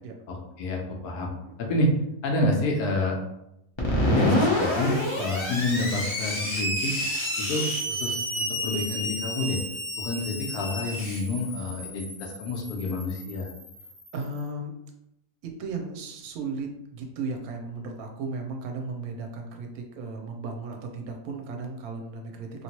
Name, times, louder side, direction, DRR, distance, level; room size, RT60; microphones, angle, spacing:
voice 1, 0.3-1.3 1.6-1.9 2.2-3.2 4.1-6.9 7.4-9.6 10.0-13.5, left 2 dB, 75° left, 0 dB, 1.1 m, -28 dB
Screech, 3.8-14.2, equal, 35° left, 0.4 m, -29 dB
voice 2, 14.1-14.7 15.4-22.6, right 3 dB, 70° right, 3 dB, 1.0 m, -35 dB
3.0 x 2.9 x 2.9 m, 0.84 s
omnidirectional pair, 1.7 m